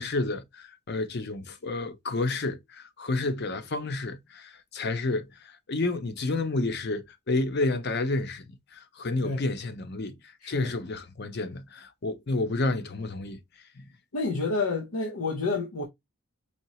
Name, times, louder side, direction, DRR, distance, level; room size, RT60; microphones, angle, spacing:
voice 1, 0.0-5.3 5.7-10.2 10.5-13.4 13.8-13.9, left 2 dB, 45° left, 0.6 m, -30 dB
voice 2, 10.4-10.7 14.1-15.8, left 3 dB, 80° left, 0.8 m, -29 dB
4.3 x 2.8 x 2.9 m
head